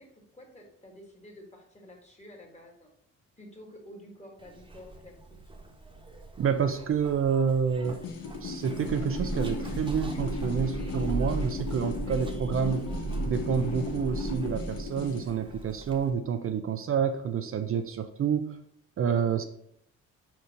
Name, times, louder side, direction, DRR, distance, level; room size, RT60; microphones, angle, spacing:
voice 1, 0.0-2.9 3.4-5.5 19.2-19.5, left 1 dB, 20° left, 2 dB, 1.8 m, -50 dB
Zipper (clothing), 4.4-16.1, right 3 dB, 15° right, 1.3 m, -38 dB
voice 2, 6.4-8.0 8.4-12.9 13.2-18.6 19.0-19.4, right 7 dB, 45° right, 8 dB, 0.5 m, -28 dB
sound 1, 7.8-15.3, left 4 dB, 55° left, 0.8 m, -36 dB
4.9 x 4.5 x 5.2 m, 0.71 s
cardioid pair, 90°, 30 cm